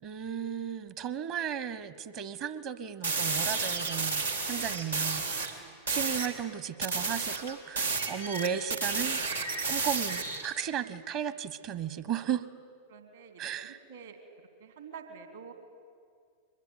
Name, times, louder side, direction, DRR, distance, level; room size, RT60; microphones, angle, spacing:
voice 1, 0.0-9.2 9.7-12.5 13.4-13.8, right 8 dB, 45° right, 15 dB, 0.9 m, -35 dB
sound 1, 3.0-5.5 5.9-6.3 6.8-10.5, right 4 dB, 85° right, 2.8 m, -31 dB
voice 2, 12.9-13.5 13.9-14.2 14.8-15.5, right 6 dB, 70° right, 6 dB, 2.9 m, -47 dB
23.5 x 21.5 x 9.8 m, 2.1 s
figure-of-eight pair, 90°, 0 cm